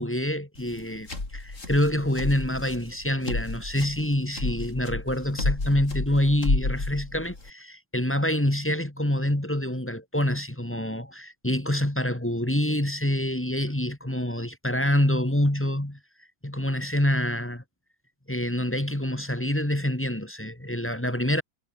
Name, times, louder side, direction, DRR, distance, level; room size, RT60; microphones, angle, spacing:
voice 1, 0.0-16.0 16.4-17.6 18.3-21.4, left 1 dB, 5° left, 1.7 m, -26 dB
sound 1, 0.6-7.5, left 2 dB, 35° left, 4.5 m, -31 dB
omnidirectional pair, 2.3 m